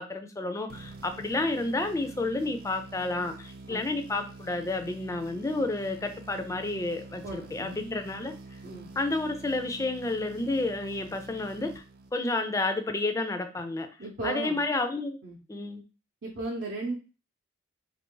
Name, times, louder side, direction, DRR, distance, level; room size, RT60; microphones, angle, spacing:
voice 1, 0.0-8.3 9.0-11.7 12.1-13.9 14.2-15.2 15.5-15.8, left 2 dB, 15° left, 7 dB, 0.3 m, -30 dB
sound 1, 0.7-12.4, right 2 dB, 50° right, 0.4 m, -46 dB
voice 2, 7.2-7.8 8.6-8.9 14.0-14.6 15.2-15.4 16.2-16.9, right 3 dB, 70° right, -4 dB, 0.7 m, -35 dB
3.0 x 2.5 x 3.7 m, 0.34 s
head